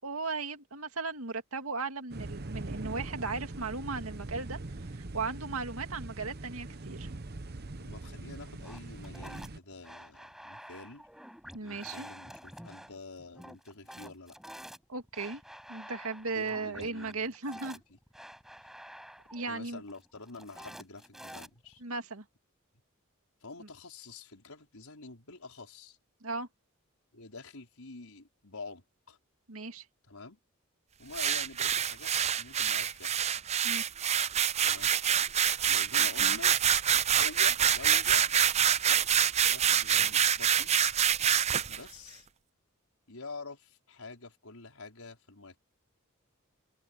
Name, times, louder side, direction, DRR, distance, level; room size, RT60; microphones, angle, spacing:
voice 1, 0.0-4.6 5.1-7.1 11.5-12.1 14.9-15.4 15.7-17.8 19.3-19.8 21.8-22.2 26.2-26.5 29.5-29.8 33.6-33.8 36.0-36.4, right 4 dB, 90° right, 2.3 m, -36 dB
sound 1, 2.1-9.6, right 2 dB, 50° right, 1.0 m, -42 dB
voice 2, 7.8-11.1 11.6-14.3 16.3-17.3 19.5-21.8 23.4-26.0 27.1-29.2 30.1-30.4 31.0-32.1 32.4-33.3 34.6-34.9 35.7-36.6 37.1-38.2 38.8-39.1 39.4-41.0 41.7-42.3 43.1-45.6, left 3 dB, 90° left, 5.2 m, -47 dB
sound 2, 8.6-21.8, equal, ahead, 7.8 m, -49 dB
sound 3, 31.1-41.8, right 9 dB, 30° right, 0.6 m, -26 dB
head